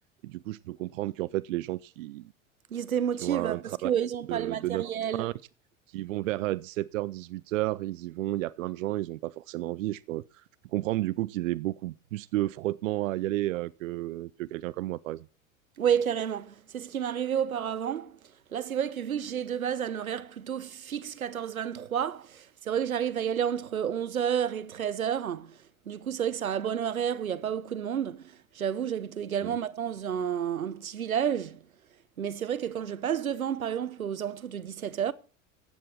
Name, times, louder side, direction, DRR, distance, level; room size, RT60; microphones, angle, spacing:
voice 1, 0.2-2.3 3.2-3.9 4.3-4.8 5.2-5.3 5.9-10.4 10.7-15.3 29.4-29.6, right 16 dB, 70° right, 0.6 m, -32 dB
voice 2, 2.7-5.3 15.8-18.2 18.5-25.6 25.9-31.6 32.2-35.1, right 9 dB, 85° right, 0.9 m, -30 dB
15.0 x 9.2 x 4.5 m
figure-of-eight pair, 75°, 41 cm